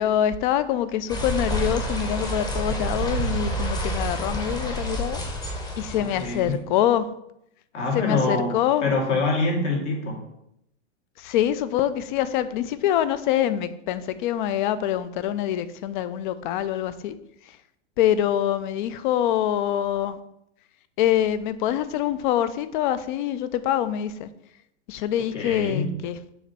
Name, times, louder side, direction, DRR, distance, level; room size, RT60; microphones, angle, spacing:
voice 1, 0.0-5.2 5.8-7.1 7.9-8.9 11.2-17.1 18.0-20.2 21.0-24.3 24.9-26.2, left 11 dB, 45° left, 0.5 m, -25 dB
sound 1, 1.1-6.6, right 1 dB, 10° left, 0.8 m, -28 dB
voice 2, 5.9-6.6 7.7-10.3 25.2-25.9, left 3 dB, 75° left, 2.5 m, -26 dB
7.1 x 3.0 x 5.9 m
hypercardioid pair, 135°, 36 cm